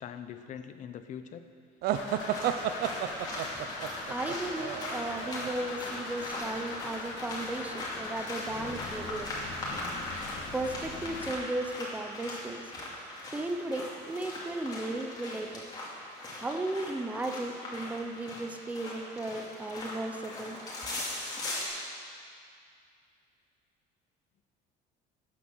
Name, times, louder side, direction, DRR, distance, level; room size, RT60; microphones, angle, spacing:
voice 1, 0.0-1.4, left 8 dB, 40° left, 9 dB, 0.7 m, -42 dB
sound 1, 1.8-5.5, right 10 dB, 55° right, 0.6 m, -32 dB
sound 2, 1.9-11.3, left 3 dB, 80° left, 2.2 m, -41 dB
sound 3, 1.9-21.6, left 1 dB, 20° left, 2.8 m, -40 dB
voice 2, 4.1-9.3 10.5-12.6 13.3-15.6 16.4-20.6, right 2 dB, 10° right, 4 dB, 0.7 m, -35 dB
14.0 x 9.1 x 6.3 m, 2.3 s
cardioid pair, 170°, 19 cm